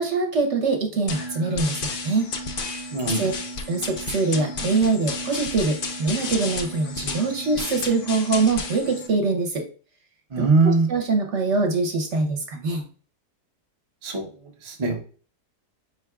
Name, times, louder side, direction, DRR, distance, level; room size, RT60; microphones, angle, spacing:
voice 1, 0.0-2.3 3.0-3.3 3.7-9.7 10.4-12.8, right 3 dB, 55° right, 3 dB, 1.0 m, -24 dB
sound 1, 1.1-9.1, left 3 dB, 65° left, 0.5 m, -32 dB
voice 2, 2.9-3.3 10.3-10.9 14.0-14.3 14.6-15.0, right 3 dB, 30° right, 1 dB, 0.5 m, -21 dB
4.5 x 4.4 x 2.3 m, 0.38 s
omnidirectional pair, 1.7 m